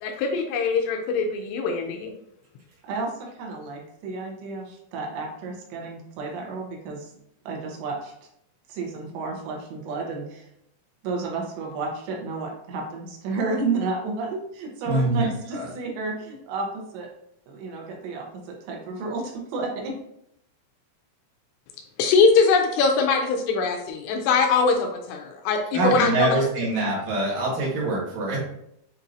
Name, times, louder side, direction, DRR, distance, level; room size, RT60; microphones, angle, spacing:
voice 1, 0.0-2.1 22.0-26.7, left 4 dB, 85° left, 3 dB, 2.5 m, -22 dB
voice 2, 2.8-7.1 7.5-8.1 8.7-10.5 11.0-17.1 17.5-20.0, right 3 dB, 75° right, 1 dB, 2.9 m, -31 dB
voice 3, 14.9-15.7 25.7-28.5, right 2 dB, 60° right, -4 dB, 2.6 m, -24 dB
7.7 x 2.7 x 2.6 m, 0.75 s
omnidirectional pair, 5.2 m